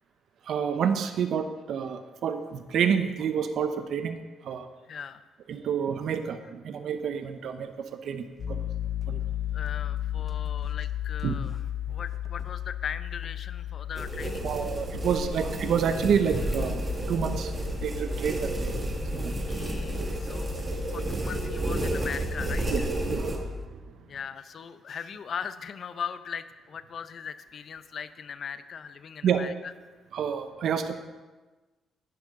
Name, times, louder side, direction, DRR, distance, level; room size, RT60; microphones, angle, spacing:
voice 1, 0.5-4.2 4.4-4.7 5.5-8.6 9.1-9.2 11.2-11.4 14.4-16.8 17.1-17.5 17.8-18.8 19.1-19.3 22.7-23.8 29.2-29.4 30.1-31.1, right 7 dB, 70° right, 8 dB, 0.8 m, -29 dB
voice 2, 4.9-5.2 9.5-11.6 11.9-14.5 19.2-20.5 20.9-22.9 24.1-29.7, left 7 dB, 55° left, 13 dB, 0.6 m, -39 dB
Piano, 8.4-19.2, left 12 dB, 70° left, 1.5 m, -35 dB
sound 1, 8.8-9.0 9.5-9.7 10.0-12.7 13.2-13.6 14.5-14.6 15.5-15.6 16.0-23.7, left 3 dB, 10° left, 0.8 m, -37 dB
sound 2, 14.0-23.4, right 2 dB, 30° right, 1.8 m, -32 dB
12.0 x 9.7 x 3.7 m, 1.2 s
cardioid pair, 90°, 0 cm